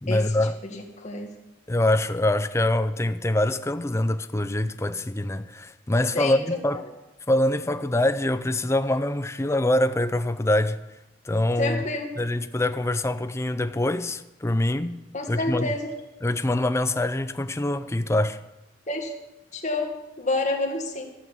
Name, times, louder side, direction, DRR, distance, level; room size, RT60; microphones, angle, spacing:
voice 1, 0.0-0.6 1.7-6.8 7.3-10.8 11.3-11.8 12.2-15.0 15.3-15.7 16.2-18.4, left 1 dB, 15° left, 0.5 m, -24 dB
voice 2, 0.6-1.3 6.1-6.6 11.6-12.1 15.1-15.9 18.9-19.1 19.5-21.0, left 2 dB, 40° left, 2.1 m, -28 dB
14.5 x 7.6 x 7.2 m
head